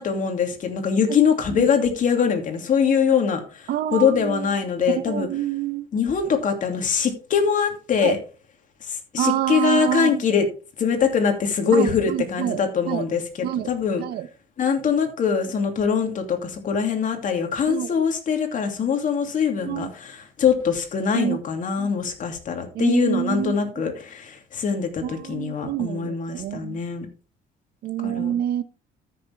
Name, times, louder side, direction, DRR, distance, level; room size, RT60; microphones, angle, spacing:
voice 1, 0.0-5.3 5.9-8.2 8.8-10.5 10.8-14.0 14.6-27.1 28.0-28.4, left 6 dB, 50° left, 2.7 m, -23 dB
voice 2, 3.7-4.5 4.9-5.9 8.0-8.1 9.2-10.2 11.7-12.6 12.8-13.1 13.4-13.7 14.0-14.3 17.7-17.9 19.6-19.9 21.1-21.4 21.8-21.9 22.7-23.6 25.0-26.8 27.8-28.6, right 11 dB, 70° right, 0.9 m, -27 dB
13.5 x 6.6 x 3.5 m
cardioid pair, 110°, 17 cm